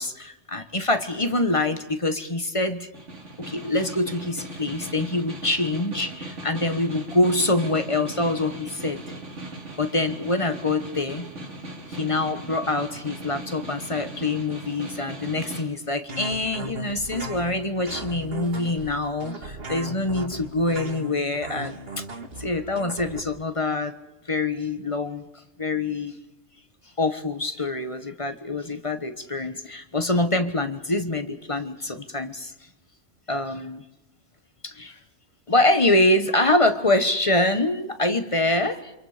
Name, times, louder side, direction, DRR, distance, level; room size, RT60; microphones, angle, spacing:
voice 1, 0.0-2.9 3.4-9.0 9.8-11.3 11.9-22.0 22.4-24.0 24.3-25.2 25.6-26.1 27.0-32.5 33.3-33.8 34.6-35.0 35.5-38.9, left 2 dB, 30° left, 9 dB, 1.4 m, -25 dB
Snare drum, 2.9-15.7, right 1 dB, 80° right, 2.9 m, -38 dB
sound 1, 16.1-23.2, right 1 dB, 55° right, 2.2 m, -37 dB
28.5 x 26.0 x 5.1 m, 0.93 s
omnidirectional pair, 1.2 m